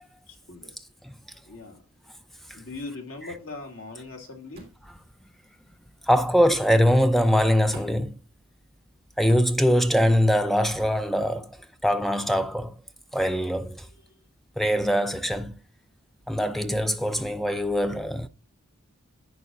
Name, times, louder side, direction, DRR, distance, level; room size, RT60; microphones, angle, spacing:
voice 1, 0.3-0.9 1.4-1.8 2.4-4.8 13.8-14.2, left 3 dB, 70° left, 2.3 m, -41 dB
sound 1, 4.5-4.8 6.1-6.3 7.7-8.1 9.3-9.6 10.8-11.0, right 1 dB, 30° right, 3.8 m, -44 dB
voice 2, 6.0-8.2 9.2-12.8 13.1-13.9 14.6-15.6 16.3-18.3, equal, ahead, 0.5 m, -23 dB
11.0 x 8.3 x 2.5 m
head